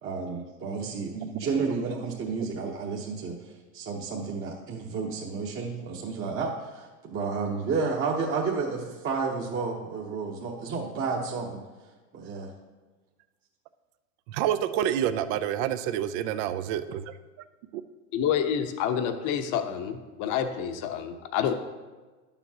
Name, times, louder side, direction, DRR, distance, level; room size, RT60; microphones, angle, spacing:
voice 1, 0.0-12.5, right 4 dB, 30° right, -3 dB, 1.1 m, -31 dB
voice 2, 14.3-17.1 17.7-17.8, right 10 dB, 55° right, 10 dB, 0.6 m, -28 dB
voice 3, 18.1-21.5, left 8 dB, 50° left, 7 dB, 1.0 m, -28 dB
11.0 x 7.1 x 2.9 m, 1.3 s
hypercardioid pair, 105°, 39 cm